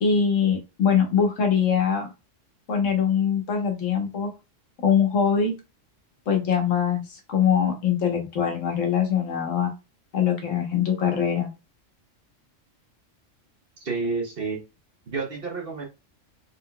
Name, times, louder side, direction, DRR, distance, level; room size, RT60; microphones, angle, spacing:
voice 1, 0.0-2.1 2.7-4.3 4.8-5.5 6.3-9.7 10.1-11.5, left 7 dB, 75° left, 3 dB, 1.3 m, -23 dB
voice 2, 13.8-14.6 15.1-15.9, right 4 dB, 50° right, 1 dB, 1.1 m, -29 dB
4.0 x 3.6 x 2.2 m, 0.27 s
omnidirectional pair, 1.3 m